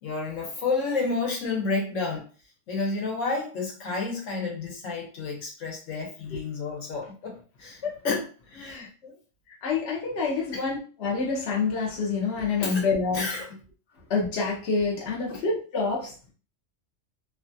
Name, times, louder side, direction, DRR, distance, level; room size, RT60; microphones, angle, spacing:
voice 1, 0.0-2.2 2.7-8.2 8.5-9.1 10.5-10.6 12.6-12.9 13.1-13.5, left 4 dB, 80° left, 1.3 m, -30 dB
voice 2, 9.6-13.4 14.1-16.3, left 4 dB, 65° left, 1.0 m, -27 dB
3.1 x 2.3 x 2.6 m
omnidirectional pair, 1.3 m